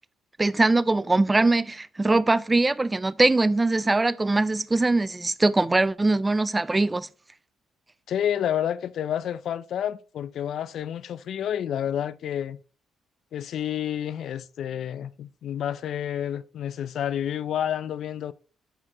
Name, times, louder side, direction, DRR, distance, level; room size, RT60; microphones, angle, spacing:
voice 1, 0.4-7.1, right 2 dB, 20° right, 0.3 m, -22 dB
voice 2, 8.1-12.6 13.3-18.3, left 10 dB, 70° left, 0.4 m, -29 dB
11.0 x 4.3 x 2.8 m
cardioid pair, 90°, 0 cm